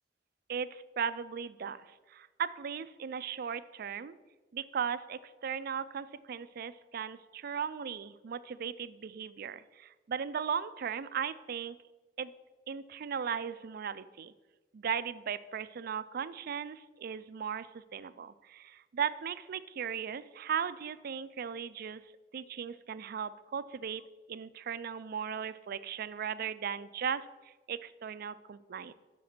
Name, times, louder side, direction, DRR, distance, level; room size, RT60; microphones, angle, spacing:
voice 1, 0.5-4.2 4.5-11.8 12.2-12.3 12.7-14.3 14.7-22.0 22.3-24.0 24.3-28.9, right 7 dB, 55° right, 15 dB, 0.4 m, -37 dB
7.2 x 6.0 x 6.0 m, 1.2 s
head